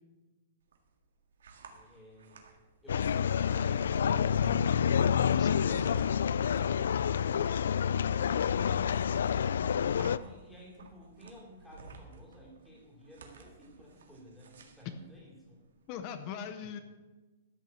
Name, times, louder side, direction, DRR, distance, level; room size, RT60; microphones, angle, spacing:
sound 1, 0.6-15.9, right 4 dB, 90° right, 1.9 m, -55 dB
voice 1, 1.7-2.4 2.8-5.0 10.1-15.7 16.6-16.8, equal, 5° left, -3 dB, 2.9 m, -54 dB
sound 2, 2.9-10.2, left 8 dB, 85° left, 0.3 m, -28 dB
voice 2, 5.2-6.1 15.9-16.8, left 7 dB, 30° left, 10 dB, 0.7 m, -41 dB
13.0 x 6.3 x 7.1 m, 1.2 s
hypercardioid pair, 170°, 0 cm